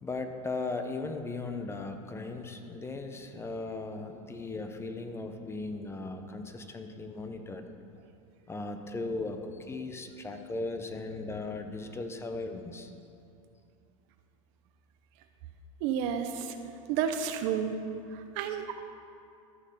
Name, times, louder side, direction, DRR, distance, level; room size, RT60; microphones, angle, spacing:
voice 1, 0.0-7.7 8.5-12.9, left 3 dB, 15° left, 6 dB, 0.8 m, -37 dB
voice 2, 15.8-16.6 16.9-17.8 18.1-18.7, right 8 dB, 60° right, 7 dB, 0.9 m, -31 dB
14.0 x 6.3 x 5.8 m, 2.5 s
supercardioid pair, 115°, 17 cm